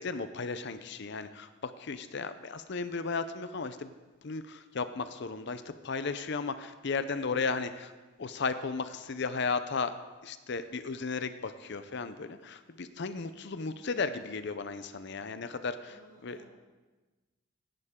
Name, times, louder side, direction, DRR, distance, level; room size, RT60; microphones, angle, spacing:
voice 1, 0.0-3.9 4.2-7.9 8.2-9.9 10.2-15.9 16.2-16.4, left 4 dB, 55° left, 11 dB, 0.6 m, -35 dB
voice 2, 15.9-16.5, right 2 dB, 45° right, -4 dB, 4.9 m, -58 dB
17.0 x 11.0 x 3.7 m, 1.2 s
head